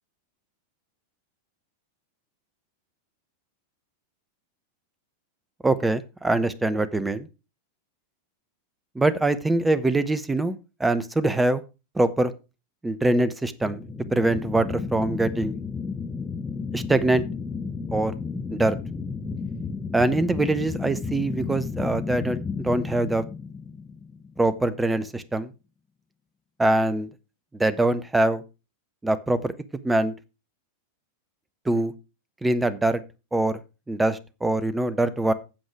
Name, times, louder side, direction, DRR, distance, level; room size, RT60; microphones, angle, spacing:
voice 1, 5.6-7.3 8.9-11.6 11.9-12.3 12.8-13.8 14.1-15.5 16.7-17.2 17.9-18.1 18.5-18.8 19.9-23.2 24.4-25.5 26.6-27.1 27.5-28.4 29.0-29.5 29.8-30.1 31.6-31.9 32.4-33.0 33.3-33.6 33.9-35.3, right 2 dB, 10° right, 14 dB, 0.9 m, -23 dB
sound 1, 13.6-24.5, left 5 dB, 15° left, 1.0 m, -33 dB
8.9 x 7.5 x 4.8 m, 0.29 s
figure-of-eight pair, 90°, 0 cm